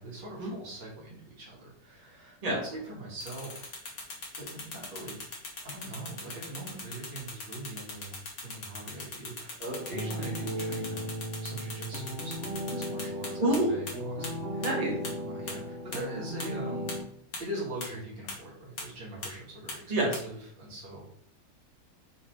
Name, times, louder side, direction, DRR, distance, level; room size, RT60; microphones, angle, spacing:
voice 1, 0.0-3.7 4.0-4.1 4.4-5.2 5.6-8.1 8.4-14.7 15.0-16.9 17.4-21.0, right 1 dB, 65° right, -4 dB, 2.6 m, -42 dB
sound 1, 3.2-13.6 13.9-14.0 14.2-14.3 14.6-14.7 15.0-15.1 15.5-15.6 15.9-16.0 16.4-16.5 16.9-17.0 17.3-17.4 17.8-17.9 18.3-18.4 18.8-18.9 19.2-19.3 19.7-19.8 20.1-20.2, left 3 dB, 50° left, 1.8 m, -39 dB
sound 2, 9.7-17.0, equal, 40° right, 1.1 m, -36 dB
voice 2, 13.4-13.8 14.6-14.9 19.9-20.1, right 1 dB, 20° right, -5 dB, 2.0 m, -26 dB
5.6 x 4.1 x 4.8 m, 0.65 s
omnidirectional pair, 2.2 m